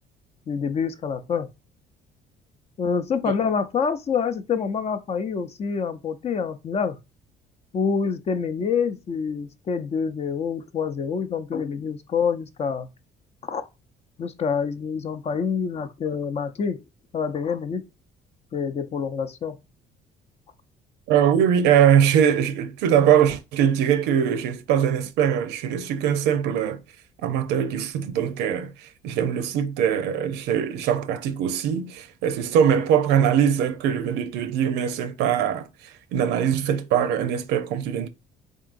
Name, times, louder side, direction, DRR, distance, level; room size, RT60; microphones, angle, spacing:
voice 1, 0.5-1.5 2.8-7.0 7.7-12.9 13.5-13.6 14.2-16.8 17.1-17.8 18.5-19.6, left 6 dB, 40° left, 0.5 m, -26 dB
voice 2, 21.1-26.8 27.2-35.7 36.1-38.1, right 8 dB, 90° right, 0.6 m, -22 dB
3.7 x 3.6 x 2.5 m
cardioid pair, 110°, 17 cm